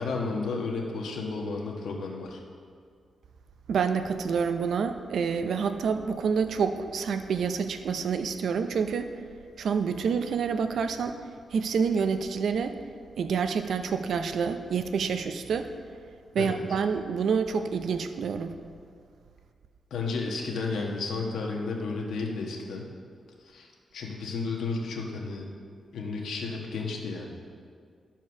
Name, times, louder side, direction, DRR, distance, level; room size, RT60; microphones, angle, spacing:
voice 1, 0.0-2.4 16.4-16.6 19.9-22.9 23.4-25.4 25.9-27.3, left 4 dB, 85° left, 0 dB, 1.3 m, -32 dB
voice 2, 3.7-9.1 9.6-11.2 11.5-12.8 13.2-15.7 16.3-18.6, right 6 dB, 75° right, 8 dB, 0.6 m, -28 dB
12.5 x 4.5 x 6.0 m, 2.2 s
cardioid pair, 100°, 0 cm